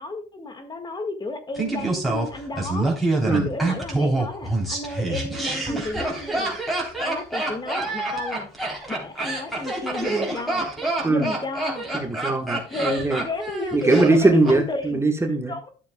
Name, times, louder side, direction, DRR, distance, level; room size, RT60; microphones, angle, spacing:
voice 1, 0.0-6.7 7.0-8.5 8.9-10.6 11.1-11.9 12.7-15.0 15.5-15.7, left 2 dB, 25° left, 7 dB, 1.7 m, -32 dB
Laughter, 1.6-14.6 14.8-14.9, right 2 dB, ahead, 3.4 m, -26 dB
voice 2, 11.9-13.2 13.7-15.5, right 2 dB, 15° right, 4 dB, 1.3 m, -21 dB
12.5 x 7.0 x 2.2 m, 0.39 s
cardioid pair, 110°, 17 cm